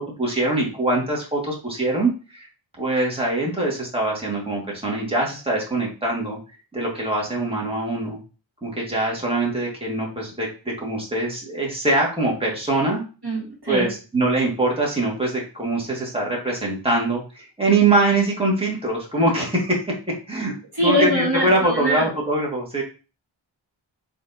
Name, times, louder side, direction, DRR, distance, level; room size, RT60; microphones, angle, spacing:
voice 1, 0.0-2.5 2.8-6.4 6.7-8.2 8.6-13.0 13.7-19.8 20.3-20.5 20.8-22.8, right 2 dB, 10° right, -3 dB, 1.8 m, -23 dB
voice 2, 13.2-13.9 20.7-22.1, equal, 50° right, -3 dB, 2.1 m, -23 dB
4.2 x 3.6 x 2.7 m, 0.34 s
wide cardioid pair, 50°, 47 cm